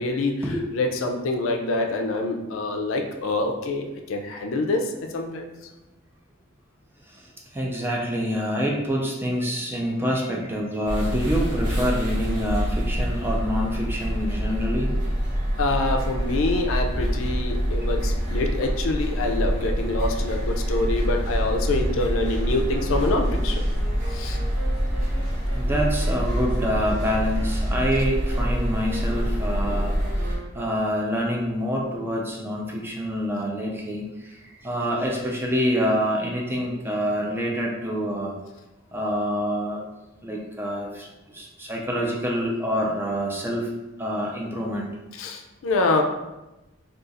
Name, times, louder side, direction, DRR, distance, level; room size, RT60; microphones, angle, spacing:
voice 1, 0.0-0.3 0.7-5.5 15.6-23.6 24.1-24.4 45.1-46.0, left 2 dB, 75° left, 3 dB, 0.4 m, -26 dB
voice 2, 7.5-14.9 25.5-38.4 38.9-39.8 40.2-43.7 44.0-45.0, equal, 10° right, -1 dB, 0.4 m, -27 dB
sound 1, 10.8-30.4, equal, 40° right, 1.0 m, -26 dB
sound 2, 19.7-27.7, equal, 20° left, 0.9 m, -39 dB
Wind instrument woodwind instrument, 22.3-31.3, right 3 dB, 80° right, 0.6 m, -40 dB
2.4 x 2.4 x 3.9 m, 1.0 s
head